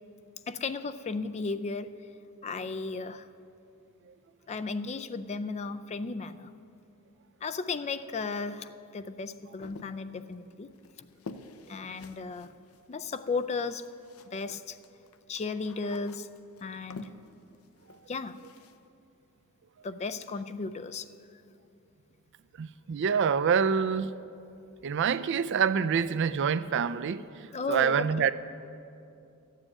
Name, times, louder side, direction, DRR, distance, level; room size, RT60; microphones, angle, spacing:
voice 1, 0.5-1.9 2.4-3.3 4.5-6.5 7.4-10.7 11.7-12.5 12.9-13.8 14.3-14.8 15.3-16.3 16.6-17.1 18.1-18.4 19.8-21.1 27.5-28.3, left 4 dB, 30° left, 0.4 m, -35 dB
sound 1, 9.6-14.5 14.8-18.8, left 3 dB, 80° left, 0.6 m, -49 dB
voice 2, 22.6-24.1 24.8-28.3, right 6 dB, 55° right, 0.4 m, -26 dB
12.5 x 7.4 x 8.6 m
head